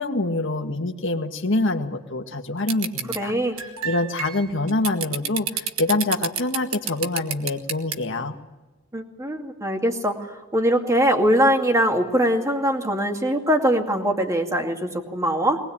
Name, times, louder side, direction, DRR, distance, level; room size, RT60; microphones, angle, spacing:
voice 1, 0.0-3.3 3.8-8.3, left 2 dB, 60° left, 5 dB, 1.9 m, -25 dB
sound 1, 2.7-3.2 3.6-7.9, right 8 dB, 75° right, 1.6 m, -28 dB
voice 2, 3.2-3.6 8.9-10.3 10.5-15.6, equal, 15° right, 3 dB, 2.3 m, -22 dB
22.5 x 20.0 x 8.8 m, 1.1 s
head